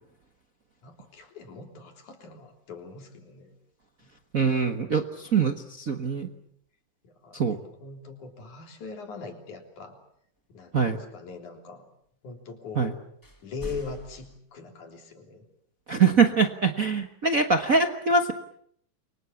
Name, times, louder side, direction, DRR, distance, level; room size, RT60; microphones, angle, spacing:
voice 1, 0.8-3.5 4.0-4.1 7.0-10.0 10.5-11.9 12.2-13.0 13.4-15.5, left 4 dB, 65° left, 4 dB, 4.9 m, -41 dB
voice 2, 4.3-6.3 7.3-7.6 10.7-11.0 12.8-12.9 15.9-18.3, right 5 dB, 70° right, 6 dB, 0.8 m, -23 dB
sound 1, 13.2-14.4, equal, 10° left, 1.6 m, -42 dB
30.0 x 24.0 x 7.2 m, 0.67 s
omnidirectional pair, 3.8 m